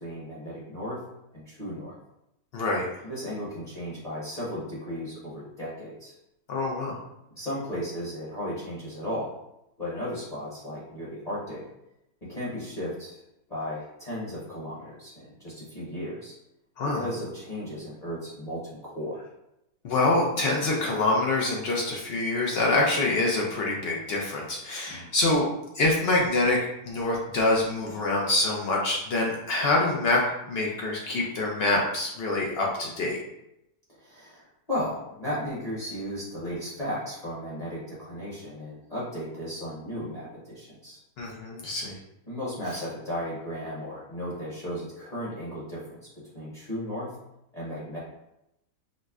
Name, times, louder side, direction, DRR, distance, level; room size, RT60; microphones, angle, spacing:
voice 1, 0.0-1.0 1.3-1.9 3.0-6.1 7.3-9.4 9.8-11.6 12.3-13.2 13.5-16.3 16.9-19.2 24.9-25.1 33.9-41.0 42.3-46.0 46.3-47.1 47.5-48.0, equal, 30° left, -8 dB, 0.9 m, -35 dB
voice 2, 2.5-2.9 6.5-7.0 16.8-17.0 19.8-25.5 25.7-26.6 26.8-30.2 30.5-33.2 41.2-41.9, left 2 dB, 70° left, -2 dB, 0.6 m, -25 dB
5.0 x 2.1 x 2.3 m, 0.85 s
omnidirectional pair, 1.7 m